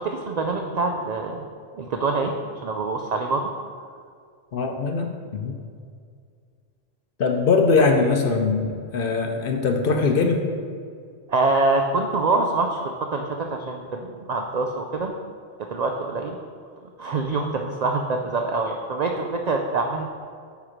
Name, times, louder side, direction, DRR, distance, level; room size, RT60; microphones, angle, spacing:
voice 1, 0.0-1.4 1.7-3.5 7.8-7.9 11.3-15.1 15.7-16.4 17.0-20.1, right 3 dB, 65° right, 3 dB, 0.4 m, -25 dB
voice 2, 4.5-5.6 7.2-10.4, left 4 dB, 60° left, 4 dB, 0.7 m, -21 dB
8.1 x 3.1 x 5.0 m, 2.2 s
omnidirectional pair, 1.2 m